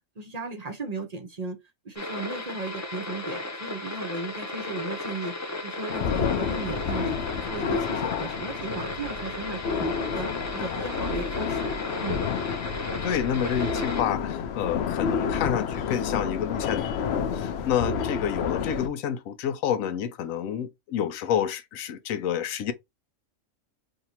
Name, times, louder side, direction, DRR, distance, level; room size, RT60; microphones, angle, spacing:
voice 1, 0.2-1.6 1.8-5.3 5.6-7.2 7.5-12.2, right 3 dB, 45° right, 0.6 m, -36 dB
sound 1, 2.0-14.0, left 2 dB, 25° left, 0.4 m, -35 dB
sound 2, 5.9-18.9, left 6 dB, 65° left, 0.7 m, -30 dB
voice 2, 13.0-22.7, left 9 dB, 90° left, 1.0 m, -29 dB
2.8 x 2.6 x 4.2 m
omnidirectional pair, 1.3 m